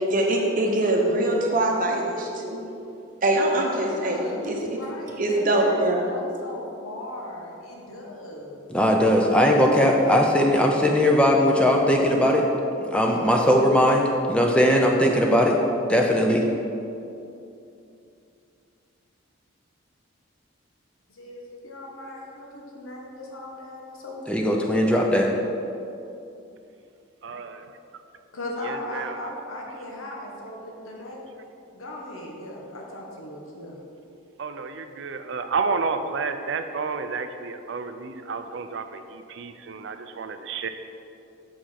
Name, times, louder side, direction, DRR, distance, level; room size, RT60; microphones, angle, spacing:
voice 1, 0.1-2.6 3.2-4.6 5.2-6.0, right 1 dB, 40° right, 0 dB, 0.8 m, -23 dB
voice 2, 3.5-8.7 21.1-25.0 28.3-31.2 31.7-33.8, left 1 dB, 85° left, -2 dB, 1.2 m, -37 dB
voice 3, 8.7-12.5 12.8-15.6 15.9-16.5 24.3-25.3, equal, 5° left, 0 dB, 0.5 m, -19 dB
voice 4, 27.2-27.8 28.6-29.3 34.4-40.7, right 4 dB, 60° right, 9 dB, 0.4 m, -31 dB
6.7 x 5.1 x 5.7 m, 2.7 s
head